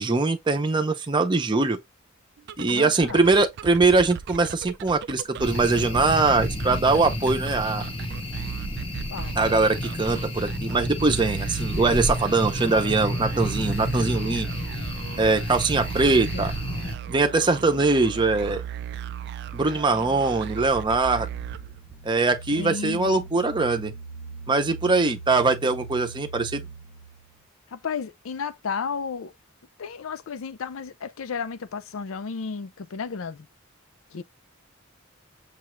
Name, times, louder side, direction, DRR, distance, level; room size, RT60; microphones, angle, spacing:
voice 1, 0.0-1.8 2.6-7.8 9.4-14.5 15.2-16.5 17.1-18.6 19.5-21.3 22.0-23.9 24.5-26.6, right 3 dB, 20° right, 0.6 m, -22 dB
sound 1, 2.4-22.1, right 9 dB, 55° right, 0.3 m, -37 dB
voice 2, 2.7-3.2 7.0-7.3 9.1-9.4 16.3-16.5 22.6-23.3 27.7-29.3 29.8-33.5 34.1-34.2, left 5 dB, 70° left, 0.5 m, -33 dB
sound 2, 5.4-17.0, left 1 dB, 25° left, 0.7 m, -31 dB
sound 3, 21.0-27.3, right 3 dB, 55° left, 0.9 m, -42 dB
6.6 x 2.4 x 3.0 m
head